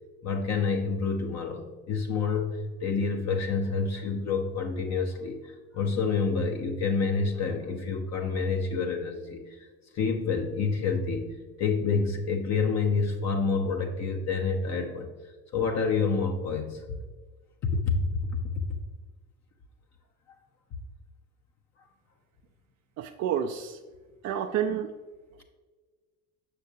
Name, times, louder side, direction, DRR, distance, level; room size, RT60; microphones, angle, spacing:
voice 1, 0.2-9.6 9.9-15.1 15.5-16.8 17.6-18.2, left 4 dB, 45° left, 3 dB, 0.8 m, -28 dB
voice 2, 23.0-23.8 24.2-24.9, right 9 dB, 50° right, 4 dB, 0.5 m, -29 dB
6.6 x 6.4 x 2.7 m, 1.4 s
hypercardioid pair, 65°, 38 cm